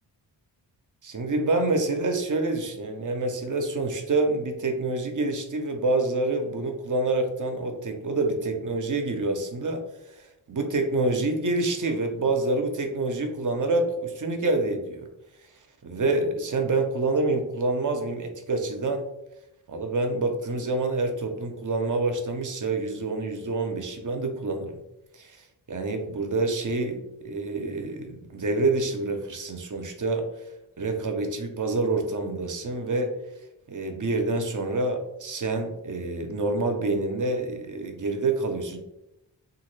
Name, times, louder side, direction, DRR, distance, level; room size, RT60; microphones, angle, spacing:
voice 1, 1.0-9.8 10.1-15.1 15.8-19.1 19.7-24.8 25.1-30.3 30.8-33.1 33.7-38.8, right 2 dB, 45° right, 5 dB, 0.6 m, -27 dB
3.0 x 2.4 x 3.1 m, 0.88 s
cardioid pair, 60°, 46 cm